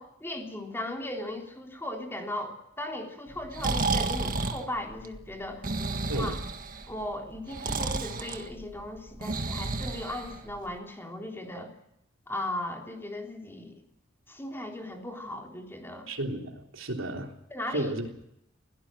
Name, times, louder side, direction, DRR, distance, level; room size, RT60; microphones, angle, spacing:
voice 1, 0.0-5.7 6.1-6.4 6.9-11.7 12.3-13.8 14.3-16.1 17.5-18.0, left 1 dB, 10° left, 2 dB, 3.5 m, -37 dB
Breathing, 3.3-10.7, right 3 dB, 45° right, 1.7 m, -32 dB
voice 2, 16.1-17.4 17.7-18.1, right 1 dB, 85° right, 3 dB, 3.5 m, -33 dB
21.5 x 17.0 x 7.8 m, 0.78 s
head